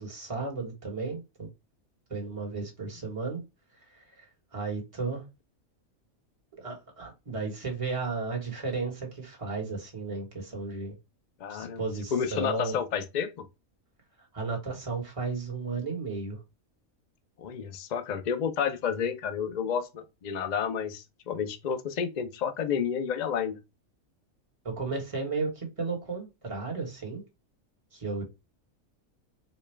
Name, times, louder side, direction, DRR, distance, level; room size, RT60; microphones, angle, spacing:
voice 1, 0.0-1.5 2.1-3.4 3.9-4.2 4.5-5.2 6.5-10.9 11.5-12.8 14.3-16.4 24.6-27.2 27.9-28.3, right 4 dB, 25° right, 1.3 m, -34 dB
voice 2, 11.4-11.8 12.1-13.3 17.4-23.6, left 7 dB, 55° left, 0.4 m, -30 dB
4.3 x 2.3 x 3.3 m
omnidirectional pair, 1.5 m